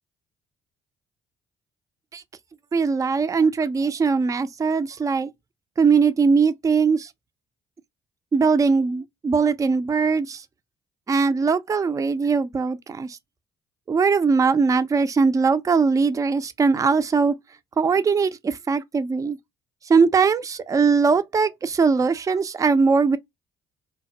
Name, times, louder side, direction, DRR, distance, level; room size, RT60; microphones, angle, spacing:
voice 1, 2.7-5.3 5.8-7.1 8.3-10.4 11.1-13.1 13.9-17.3 17.8-19.4 19.9-23.2, right 5 dB, 20° right, 0.4 m, -20 dB
2.2 x 2.1 x 2.6 m
hypercardioid pair, 50°, 15 cm